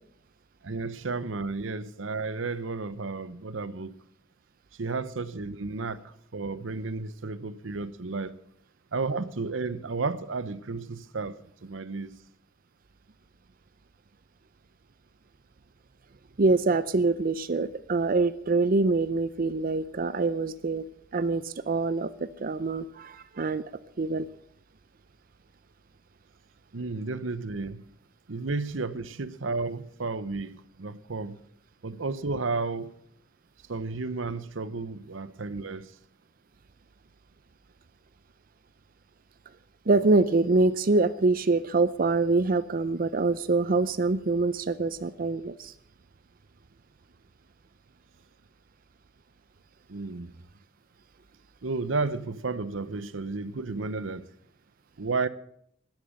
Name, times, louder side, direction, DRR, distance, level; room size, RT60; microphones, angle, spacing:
voice 1, 0.6-3.9 4.8-8.3 8.9-11.4 11.6-12.1 26.7-27.8 28.3-31.4 31.8-32.9 33.7-35.9 49.9-50.3 51.6-54.3 55.0-55.3, right 3 dB, 85° right, 0.8 m, -32 dB
voice 2, 16.4-20.8 21.1-23.6 24.0-24.3 39.9-45.7, right 3 dB, 45° right, 0.6 m, -25 dB
12.5 x 11.0 x 7.6 m
head